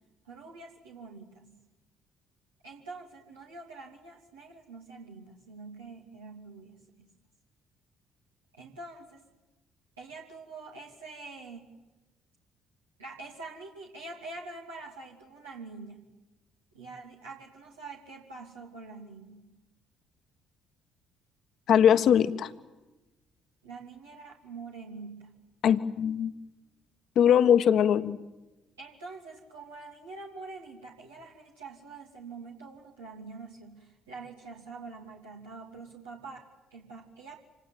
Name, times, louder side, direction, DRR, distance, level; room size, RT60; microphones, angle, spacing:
voice 1, 0.2-1.6 2.6-7.1 8.5-9.2 10.0-11.7 13.0-16.1 16.7-19.5 23.6-25.3 28.8-37.4, right 3 dB, 80° right, -3 dB, 2.9 m, -45 dB
voice 2, 21.7-22.5 25.6-26.3 27.1-28.2, left 9 dB, 55° left, 11 dB, 1.4 m, -21 dB
27.0 x 19.5 x 9.1 m, 1.1 s
figure-of-eight pair, 50°, 0 cm